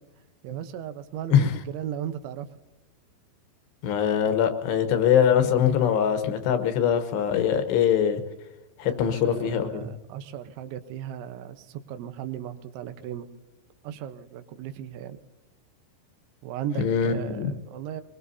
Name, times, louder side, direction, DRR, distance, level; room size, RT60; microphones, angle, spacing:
voice 1, 0.4-2.5 8.8-13.3 13.8-15.2 16.4-18.0, right 10 dB, 90° right, 9 dB, 3.4 m, -36 dB
voice 2, 3.8-8.2 8.8-9.9 16.8-17.6, left 8 dB, 75° left, 8 dB, 3.1 m, -22 dB
22.5 x 22.5 x 2.7 m, 1.0 s
omnidirectional pair, 5.3 m